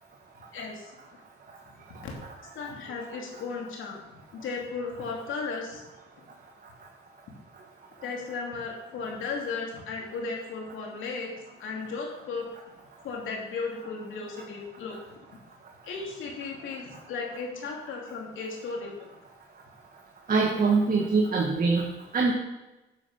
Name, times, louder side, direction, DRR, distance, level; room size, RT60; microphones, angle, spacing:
voice 1, 0.5-0.9 1.9-2.3 2.5-5.8 6.2-6.3 8.0-12.5 13.0-15.4 15.8-19.1, left 4 dB, 80° left, 0 dB, 2.9 m, -35 dB
voice 2, 20.3-21.9 22.1-22.3, right 4 dB, 45° right, -1 dB, 1.8 m, -23 dB
10.0 x 7.5 x 5.7 m, 1.0 s
cardioid pair, 90°, 20 cm